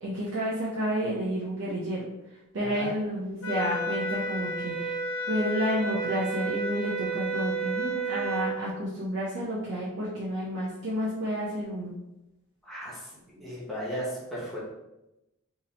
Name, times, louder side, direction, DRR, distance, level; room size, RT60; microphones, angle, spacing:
voice 1, 0.0-2.0 2.5-5.0 5.3-11.9, equal, 65° right, -7 dB, 0.7 m, -30 dB
voice 2, 2.6-2.9 12.6-14.6, equal, ahead, -7 dB, 0.8 m, -36 dB
sound 1, 3.4-8.6, right 2 dB, 85° left, 0.6 m, -31 dB
3.6 x 2.9 x 2.9 m, 0.93 s
head